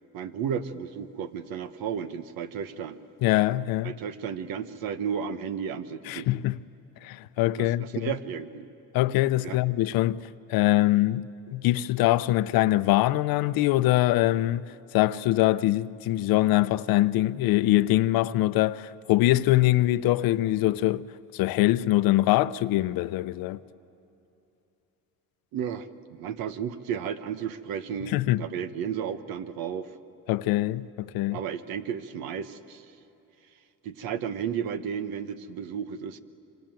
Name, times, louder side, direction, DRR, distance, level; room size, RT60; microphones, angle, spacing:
voice 1, 0.1-3.0 3.8-6.3 7.6-8.7 9.4-9.6 25.5-29.9 31.3-32.9 33.8-36.2, right 8 dB, 80° right, 1.2 m, -33 dB
voice 2, 3.2-4.0 6.1-6.6 7.0-8.1 8.9-21.1 21.3-23.6 28.1-28.4 30.3-31.4, left 16 dB, 80° left, 0.7 m, -23 dB
25.5 x 25.5 x 9.1 m
cardioid pair, 90°, 35 cm